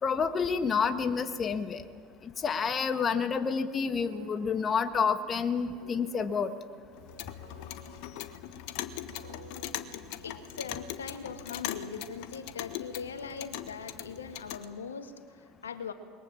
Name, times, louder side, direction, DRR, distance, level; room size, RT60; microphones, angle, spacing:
voice 1, 0.0-1.8 2.2-6.5, left 6 dB, 35° left, 9 dB, 1.6 m, -29 dB
sound 1, 4.1-10.9, right 4 dB, 85° right, 3.5 m, -54 dB
Clock, 6.9-14.7, left 12 dB, 65° left, 1.4 m, -40 dB
voice 2, 10.2-15.9, left 5 dB, 85° left, 8 dB, 1.9 m, -41 dB
27.5 x 22.0 x 7.4 m, 2.1 s
hypercardioid pair, 70°, 0 cm